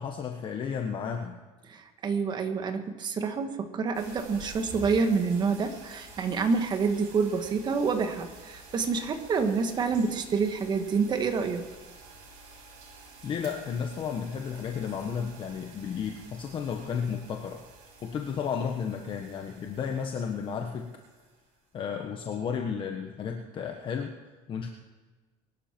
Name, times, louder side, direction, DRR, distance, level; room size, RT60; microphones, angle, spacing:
voice 1, 0.0-1.4 13.2-17.6 18.0-20.9 21.7-24.1 24.5-24.7, left 7 dB, 35° left, 3 dB, 1.3 m, -33 dB
voice 2, 1.6-11.6, right 5 dB, 30° right, 7 dB, 1.7 m, -28 dB
sound 1, 3.9-21.4, right 2 dB, 65° right, 7.0 m, -50 dB
23.0 x 12.5 x 4.6 m, 1.3 s
cardioid pair, 155°, 15 cm